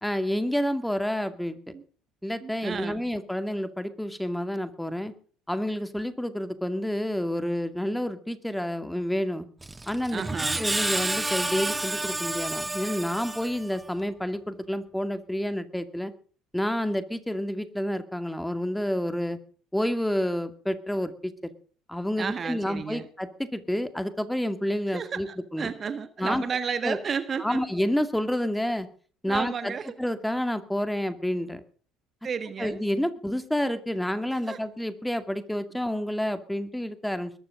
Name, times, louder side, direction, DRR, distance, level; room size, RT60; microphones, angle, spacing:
voice 1, 0.0-1.6 2.2-5.1 5.5-9.5 9.9-10.2 10.6-16.1 16.5-19.4 19.7-21.5 21.9-25.7 26.2-26.4 26.8-27.0 27.4-28.9 29.2-29.7 30.0-31.6 32.6-37.4, equal, 5° left, 2.1 m, -29 dB
voice 2, 2.4-3.0 10.1-10.6 22.2-23.1 24.9-27.6 29.2-29.9 32.2-32.8 34.5-34.6, right 6 dB, 40° right, 1.5 m, -32 dB
Screech, 9.6-13.9, right 2 dB, 15° right, 0.7 m, -30 dB
21.0 x 13.0 x 3.8 m
hypercardioid pair, 65°, 0 cm